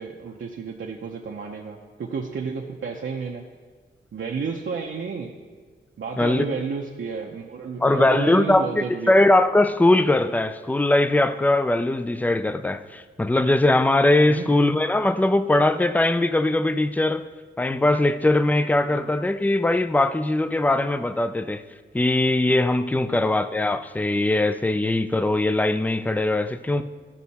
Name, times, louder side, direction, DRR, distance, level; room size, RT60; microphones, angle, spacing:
voice 1, 0.0-3.5 4.1-5.3 6.0-9.3 14.3-14.6 18.9-19.1 23.1-23.3, right 5 dB, 75° right, 0.8 m, -32 dB
voice 2, 7.8-17.3 17.6-21.6 21.9-26.8, left 2 dB, 10° left, 0.3 m, -21 dB
14.5 x 5.6 x 4.2 m
wide cardioid pair, 140°, 20 cm